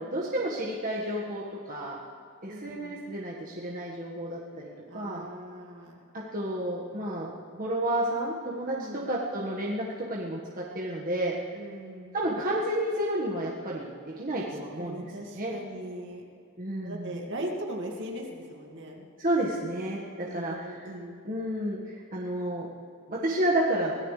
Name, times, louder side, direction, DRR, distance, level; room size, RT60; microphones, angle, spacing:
voice 1, 0.0-2.0 2.4-5.3 6.1-11.3 12.1-15.5 16.6-17.1 19.2-20.8 21.2-22.7 23.1-23.9, right 1 dB, 40° right, -5 dB, 1.7 m, -31 dB
voice 2, 2.5-3.0 4.9-6.0 8.8-9.1 11.5-12.1 14.4-14.5 14.8-16.2 16.8-19.1 20.3-21.2, right 1 dB, 55° right, 0 dB, 2.2 m, -39 dB
25.0 x 17.0 x 3.4 m, 2.4 s
head